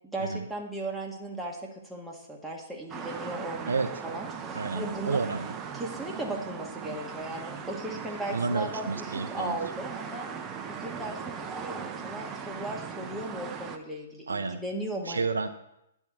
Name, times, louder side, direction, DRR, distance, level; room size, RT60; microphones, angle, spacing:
voice 1, 0.1-3.7 4.0-5.2 5.7-10.3 10.7-15.2, right 1 dB, 5° right, -2 dB, 1.3 m, -37 dB
sound 1, 2.9-13.8, right 6 dB, 20° right, 0.6 m, -39 dB
voice 2, 4.5-5.5 8.3-9.6 14.3-14.6 15.0-15.5, right 4 dB, 80° right, 8 dB, 0.5 m, -30 dB
9.8 x 3.6 x 6.0 m, 0.82 s
figure-of-eight pair, 120°, 0 cm